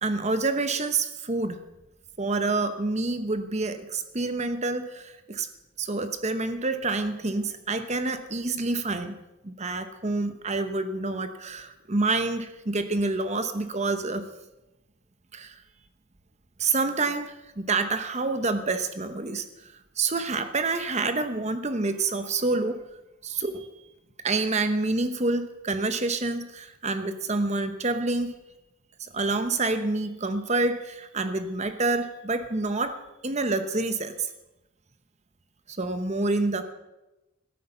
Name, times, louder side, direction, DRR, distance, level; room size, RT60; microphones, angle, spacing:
voice 1, 0.0-1.6 2.2-5.5 5.8-9.2 9.4-14.2 15.3-15.6 16.6-22.8 23.2-23.7 24.2-28.3 29.0-33.0 33.2-34.3 35.7-36.6, right 3 dB, 30° right, 10 dB, 1.0 m, -27 dB
14.5 x 13.0 x 5.7 m, 0.99 s
head